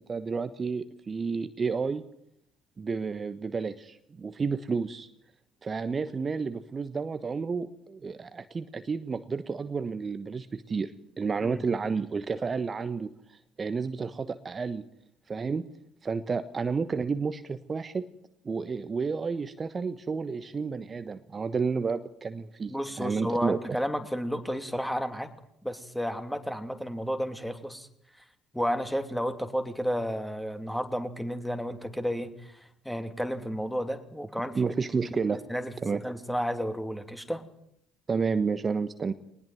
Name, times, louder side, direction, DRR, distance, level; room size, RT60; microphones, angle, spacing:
voice 1, 0.0-2.0 2.8-5.1 5.6-14.8 15.3-15.6 16.0-18.1 18.4-23.8 34.5-35.4 35.8-36.0 38.1-39.1, right 5 dB, 30° right, 12 dB, 1.2 m, -31 dB
voice 2, 22.7-25.3 25.6-27.9 28.5-34.7 35.1-37.4, equal, ahead, 8 dB, 3.1 m, -32 dB
21.5 x 20.0 x 9.3 m, 0.72 s
figure-of-eight pair, 55°, 0 cm